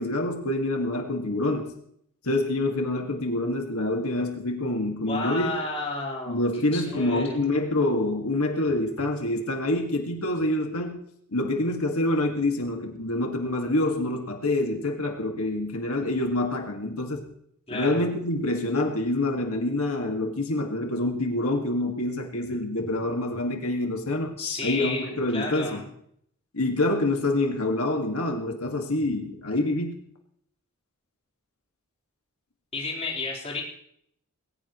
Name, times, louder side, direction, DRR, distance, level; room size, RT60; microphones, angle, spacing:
voice 1, 0.0-1.7 2.2-5.5 6.3-11.0 11.3-17.3 17.7-24.4 24.6-25.8 26.5-30.0, left 1 dB, 85° left, 2 dB, 1.9 m, -26 dB
voice 2, 5.1-7.4 17.7-18.1 24.4-25.8 32.7-33.6, left 3 dB, 30° left, -3 dB, 4.0 m, -32 dB
20.5 x 18.0 x 3.1 m, 0.69 s
head